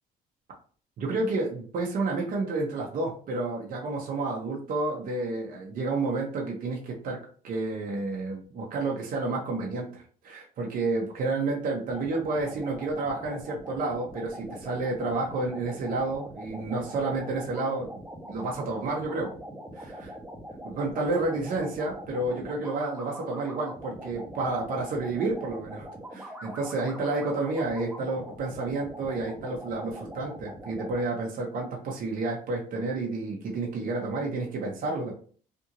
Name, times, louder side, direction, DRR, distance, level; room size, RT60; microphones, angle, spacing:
voice 1, 1.0-7.2 7.4-17.9 18.3-19.3 19.7-20.2 20.6-35.1, right 3 dB, 55° right, -1 dB, 0.9 m, -30 dB
sound 1, 11.9-31.0, equal, 10° right, 0.8 m, -42 dB
3.4 x 2.6 x 2.9 m, 0.44 s
cardioid pair, 110°, 17 cm